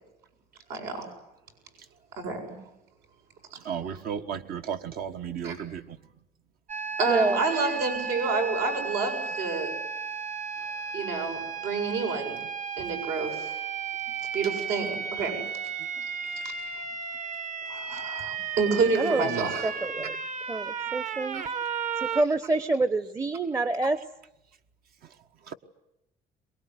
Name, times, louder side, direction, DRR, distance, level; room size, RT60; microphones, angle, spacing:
voice 1, 0.7-1.1 2.2-2.6 5.4-5.6 7.0-9.8 10.9-12.4 12.8-13.6 14.3-15.4 17.7-19.7 21.3-21.4, right 4 dB, 80° right, 3 dB, 7.3 m, -29 dB
voice 2, 3.6-6.0 19.3-19.5 25.5-25.6, right 8 dB, 65° right, 7 dB, 1.4 m, -34 dB
sound 1, 6.7-22.2, right 6 dB, 45° right, 1.4 m, -34 dB
voice 3, 7.1-7.4 19.0-19.3 19.6-20.2 20.5-21.4 22.0-24.0, right 2 dB, 20° right, 13 dB, 0.9 m, -27 dB
23.5 x 21.5 x 9.7 m, 0.87 s
cardioid pair, 110°, 17 cm